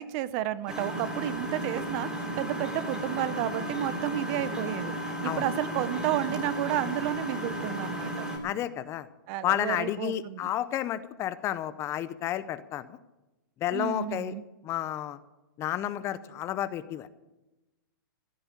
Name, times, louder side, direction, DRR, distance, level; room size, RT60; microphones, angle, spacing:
voice 1, 0.0-8.1 9.3-10.5 13.7-14.4, right 13 dB, 35° right, 17 dB, 0.7 m, -32 dB
Engine, 0.7-8.4, equal, 5° right, 3.2 m, -34 dB
voice 2, 8.4-9.1 9.4-12.9 13.6-14.3 14.6-15.2 15.6-17.1, left 12 dB, 25° left, 15 dB, 0.6 m, -31 dB
15.0 x 7.8 x 9.9 m, 1.0 s
hypercardioid pair, 150°, 11 cm